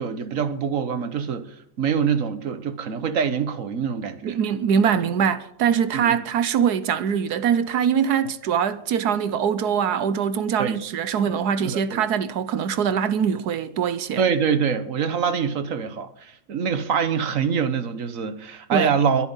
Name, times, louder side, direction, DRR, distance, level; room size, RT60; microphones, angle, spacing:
voice 1, 0.0-1.5 1.8-4.4 5.9-6.2 10.6-10.8 11.6-12.0 14.2-19.3, right 6 dB, 55° right, 1.4 m, -25 dB
voice 2, 4.2-14.2 18.7-19.0, right 7 dB, 75° right, 1.4 m, -23 dB
22.5 x 9.1 x 5.6 m
omnidirectional pair, 1.7 m